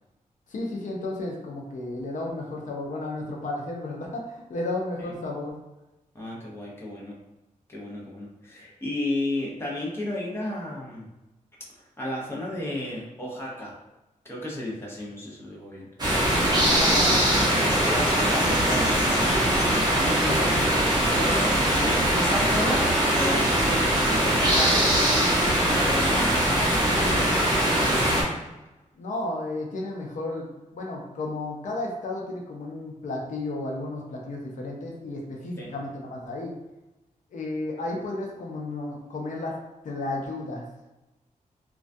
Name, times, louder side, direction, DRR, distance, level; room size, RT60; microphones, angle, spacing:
voice 1, 0.5-5.6 16.6-17.5 19.4-19.7 29.0-30.5 30.7-36.5 37.3-39.6 39.8-40.6, left 2 dB, 65° left, -1 dB, 0.5 m, -33 dB
voice 2, 6.1-7.2 7.7-11.1 12.0-13.8 14.2-16.9 17.9-19.3 19.9-28.3 35.6-35.7, left 1 dB, 20° left, -5 dB, 0.6 m, -33 dB
sound 1, 16.0-28.2, right 1 dB, 30° right, 0.6 m, -22 dB
2.3 x 2.2 x 2.5 m, 1.0 s
wide cardioid pair, 140°, 14 cm